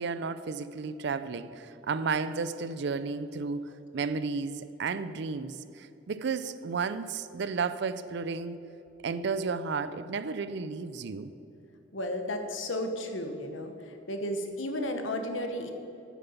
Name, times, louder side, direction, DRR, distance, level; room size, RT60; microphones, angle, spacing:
voice 1, 0.0-3.7 3.9-8.6 9.0-11.3, right 4 dB, 60° right, 14 dB, 0.5 m, -33 dB
voice 2, 11.9-15.7, left 1 dB, 80° left, 6 dB, 1.1 m, -33 dB
9.2 x 7.7 x 7.0 m, 2.8 s
head